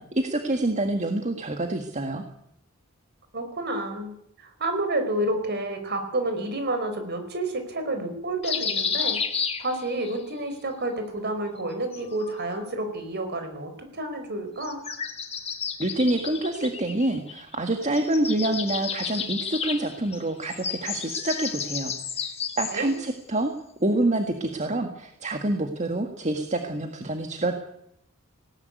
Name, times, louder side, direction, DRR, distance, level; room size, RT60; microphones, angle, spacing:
voice 1, 0.0-2.2 15.8-21.9 22.6-23.5 23.8-27.5, right 1 dB, 35° right, 5 dB, 1.8 m, -27 dB
voice 2, 3.3-4.1 4.4-9.2 9.6-14.8 22.7-22.9, right 1 dB, 50° right, 7 dB, 4.8 m, -29 dB
sound 1, 8.4-10.2 11.6-12.6 14.6-17.6 17.8-23.0, left 6 dB, 30° left, 1.9 m, -32 dB
19.0 x 18.0 x 9.6 m, 0.78 s
head